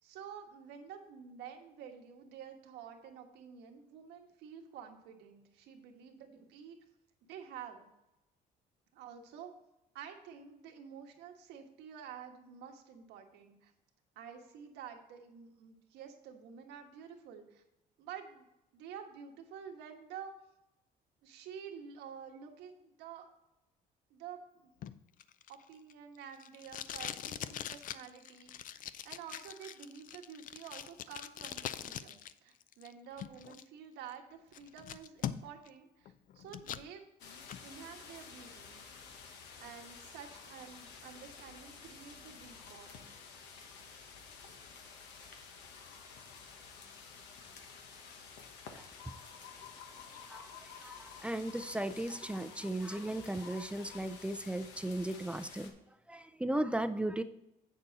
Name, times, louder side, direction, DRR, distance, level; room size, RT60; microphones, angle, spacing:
voice 1, 0.0-6.8 7.2-7.9 8.9-9.5 9.9-13.7 14.1-17.6 18.0-18.5 18.7-20.3 21.2-23.3 24.1-24.7 25.5-28.5 28.8-37.0 37.6-38.8 39.6-43.0, right 7 dB, 90° right, 4 dB, 1.3 m, -50 dB
Packing tape duct tape, 24.8-32.3 32.6-33.6 34.1-34.2 34.5-35.7 36.1-36.9 37.3-37.6, left 10 dB, 55° left, 0.5 m, -43 dB
sound 1, 37.2-55.7, left 5 dB, 85° left, 1.2 m, -51 dB
voice 2, 50.3-55.7 56.1-57.2, right 1 dB, 5° right, 9 dB, 0.4 m, -36 dB
8.2 x 6.8 x 4.0 m, 0.90 s
cardioid pair, 110°, 17 cm